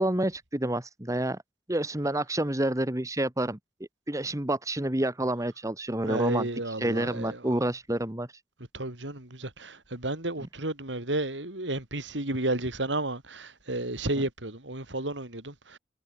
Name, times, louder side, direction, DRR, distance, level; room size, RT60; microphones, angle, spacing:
voice 1, 0.0-1.4 1.7-3.6 4.1-8.3, right 1 dB, 20° right, 1.6 m, -28 dB
voice 2, 6.1-7.4 8.7-15.8, right 2 dB, 90° right, 5.1 m, -32 dB
head